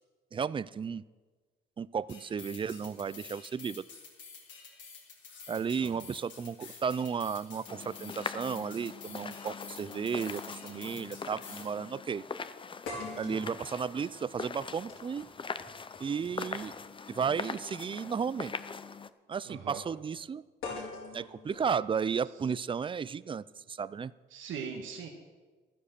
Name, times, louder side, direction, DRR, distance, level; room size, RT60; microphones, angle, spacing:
voice 1, 0.3-1.0 1.8-3.8 5.5-12.2 13.2-15.3 16.0-16.7 17.1-18.5 19.3-20.4 21.1-24.1, right 6 dB, 25° right, 19 dB, 0.4 m, -34 dB
sound 1, 2.1-11.7, left 5 dB, 65° left, 3.5 m, -50 dB
sound 2, 7.7-19.1, left 5 dB, 25° left, 0.6 m, -42 dB
sound 3, 9.6-9.7 10.9-11.0 11.4-11.5 12.8-16.9 18.1-18.2 20.6-22.6, left 3 dB, 85° left, 4.5 m, -45 dB
voice 2, 19.5-19.8 24.3-25.1, right 6 dB, 80° right, 2 dB, 1.6 m, -40 dB
12.5 x 10.0 x 6.7 m, 1.3 s
cardioid pair, 90°, 20 cm